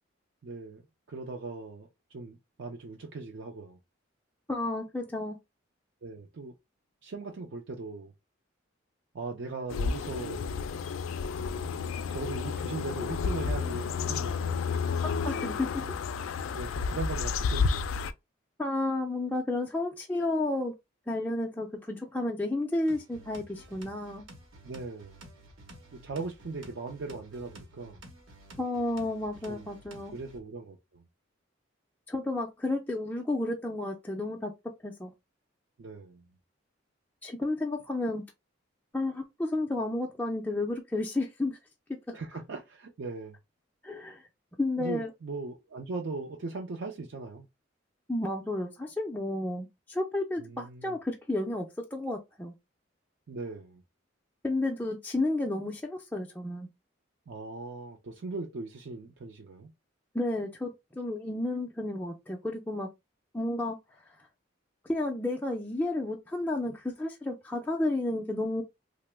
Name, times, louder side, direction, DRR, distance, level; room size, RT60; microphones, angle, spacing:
voice 1, 0.4-0.8 1.1-3.8 6.0-6.5 7.0-8.1 9.1-10.5 12.1-14.7 16.5-17.9 24.6-25.2 26.0-28.0 29.5-29.7 30.1-31.0 35.8-36.2 42.1-43.4 44.8-47.5 50.4-51.0 53.3-53.8 57.3-59.7 66.6-66.8, right 3 dB, 65° right, 0.4 m, -39 dB
voice 2, 4.5-5.4 15.0-15.8 18.6-20.7 21.1-24.2 28.6-30.1 32.1-34.5 34.8-35.1 37.2-38.3 38.9-41.6 42.1-42.2 43.8-44.2 44.6-45.1 48.1-52.5 54.4-56.7 60.1-62.9 63.3-63.8 64.8-68.6, left 2 dB, 10° left, 0.3 m, -32 dB
sound 1, 9.7-18.1, left 5 dB, 90° left, 0.3 m, -31 dB
sound 2, 22.9-30.4, right 1 dB, 90° right, 0.9 m, -51 dB
2.9 x 2.0 x 3.2 m
head